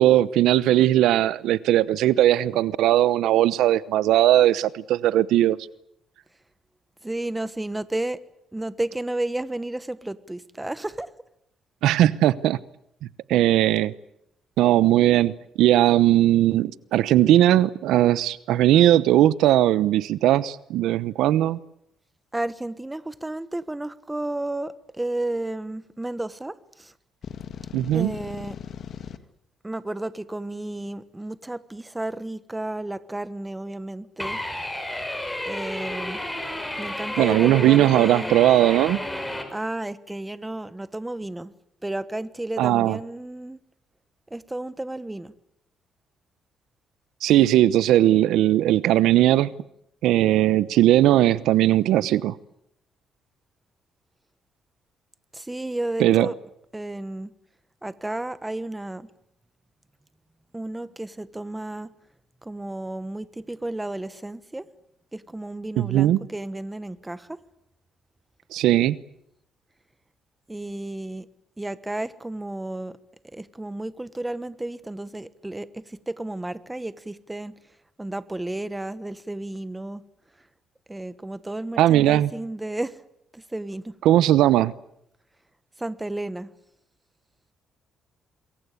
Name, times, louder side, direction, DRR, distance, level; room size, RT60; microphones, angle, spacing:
voice 1, 0.0-5.6 11.8-12.6 13.3-13.9 14.6-21.6 27.7-28.1 37.2-39.0 42.6-43.0 47.2-49.5 50.0-52.3 56.0-56.3 65.8-66.2 68.5-69.0 81.8-82.3 84.0-84.7, right 13 dB, 85° right, 0.9 m, -19 dB
voice 2, 7.0-8.2 8.5-11.1 22.3-26.9 27.9-28.6 29.6-34.4 35.4-36.2 36.8-38.4 39.5-41.5 41.8-43.6 44.3-45.3 55.3-56.4 56.7-57.3 57.8-59.1 60.5-61.9 62.4-64.7 65.1-67.4 70.5-71.3 71.6-73.0 73.2-77.6 78.0-80.0 80.9-83.0 83.3-84.0 85.8-86.5, right 1 dB, 10° right, 1.3 m, -32 dB
sound 1, 27.2-29.2, left 8 dB, 50° left, 1.8 m, -38 dB
sound 2, 34.2-39.4, left 1 dB, 5° left, 5.1 m, -31 dB
27.0 x 22.5 x 8.4 m
cardioid pair, 125°, 0 cm